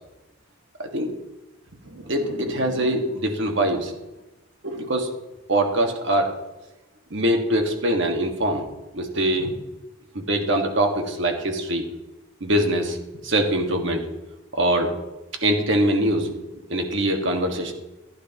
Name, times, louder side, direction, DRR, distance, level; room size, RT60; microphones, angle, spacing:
voice 1, 0.8-1.2 1.8-3.9 4.6-5.1 5.5-6.3 7.1-8.6 8.9-9.6 10.1-11.8 12.4-13.0 13.2-14.1 14.5-14.9 15.4-17.7, right 1 dB, 60° right, 3 dB, 1.7 m, -23 dB
15.5 x 10.0 x 3.0 m, 1.0 s
head